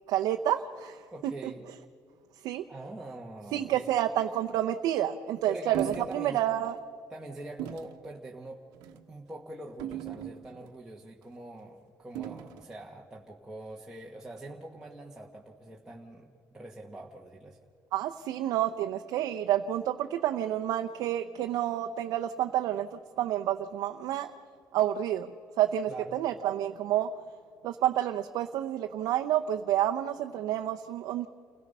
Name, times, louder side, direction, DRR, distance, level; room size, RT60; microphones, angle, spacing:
voice 1, 0.1-1.0 2.4-2.6 3.5-5.8 6.1-6.7 17.9-22.9 23.2-24.3 24.7-25.3 25.6-27.1 27.6-31.3, right 12 dB, 70° right, 5 dB, 0.7 m, -29 dB
voice 2, 1.1-1.7 2.7-3.9 5.5-6.4 7.1-8.6 9.1-17.6 25.9-26.2, right 2 dB, 10° right, -2 dB, 1.4 m, -44 dB
sound 1, 5.7-6.2 6.6-6.8 7.6-8.0 8.7-9.0 9.8-10.7 12.1-12.7, right 11 dB, 85° right, 1.1 m, -38 dB
29.5 x 17.0 x 5.5 m, 2.2 s
cardioid pair, 145°, 7 cm